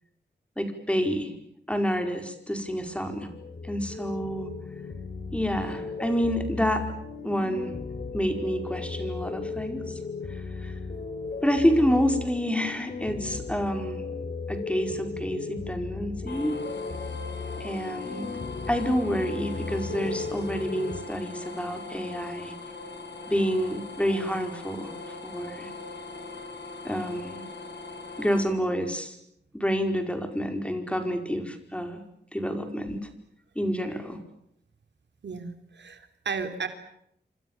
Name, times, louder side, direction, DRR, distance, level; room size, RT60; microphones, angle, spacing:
voice 1, 0.6-1.3 1.7-3.3 3.6-4.5 5.3-6.8 7.2-7.7 8.1-10.0 10.3-10.7 11.4-14.0 14.5-16.6 17.6-18.4 18.7-22.5 23.3-24.9 25.2-25.7 26.8-27.4 28.2-29.2 29.5-32.0 32.3-33.1 33.5-34.2, equal, 5° left, 6 dB, 4.8 m, -28 dB
sound 1, 2.6-21.0, left 4 dB, 50° left, 4.2 m, -36 dB
sound 2, 16.3-28.4, left 3 dB, 80° left, 7.3 m, -40 dB
voice 2, 35.2-36.7, right 5 dB, 85° right, 7 dB, 3.3 m, -34 dB
27.5 x 26.5 x 7.3 m, 0.74 s
wide cardioid pair, 130°, 18 cm